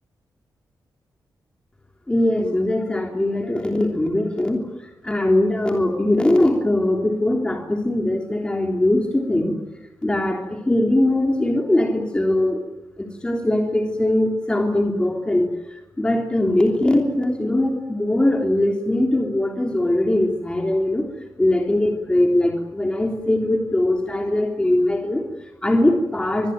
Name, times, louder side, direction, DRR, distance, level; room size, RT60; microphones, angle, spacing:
voice 1, 2.1-9.6 10.0-12.6 13.0-21.1 21.4-26.5, left 1 dB, 15° left, 2 dB, 3.2 m, -21 dB
26.5 x 21.5 x 9.3 m, 0.95 s
wide cardioid pair, 130°, 7 cm